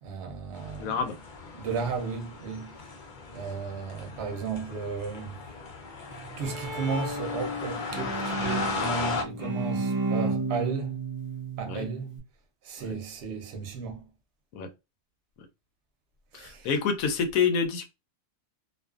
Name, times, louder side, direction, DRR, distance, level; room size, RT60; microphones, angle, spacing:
voice 1, 0.0-1.3 1.5-2.8 3.3-5.4 6.4-11.0 11.6-12.1 12.6-14.1 16.3-16.8, right 5 dB, 60° right, 0.8 m, -34 dB
sound 1, 0.5-9.2, left 4 dB, 60° left, 0.5 m, -37 dB
voice 2, 0.8-1.2 11.7-11.9 12.9-13.0 14.5-14.7 16.3-17.8, left 6 dB, 85° left, 1.0 m, -27 dB
Bowed string instrument, 6.1-12.2, right 3 dB, 30° right, 0.3 m, -33 dB
2.5 x 2.3 x 2.3 m
omnidirectional pair, 1.4 m